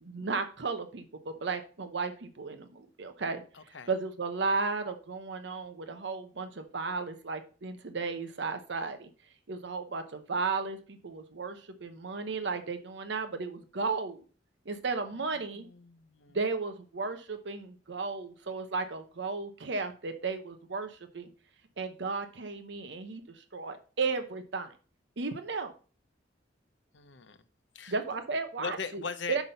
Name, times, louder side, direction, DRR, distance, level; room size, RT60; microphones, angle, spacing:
voice 1, 0.0-9.1 9.5-14.2 14.7-15.7 16.3-21.3 21.8-24.7 25.2-25.7 27.9-29.0 29.3-29.4, right 4 dB, 70° right, 0.8 m, -34 dB
voice 2, 3.5-3.9 15.5-16.4 26.9-27.4 27.7-27.9 28.6-29.4, left 5 dB, 75° left, 0.8 m, -39 dB
6.0 x 5.8 x 5.3 m
head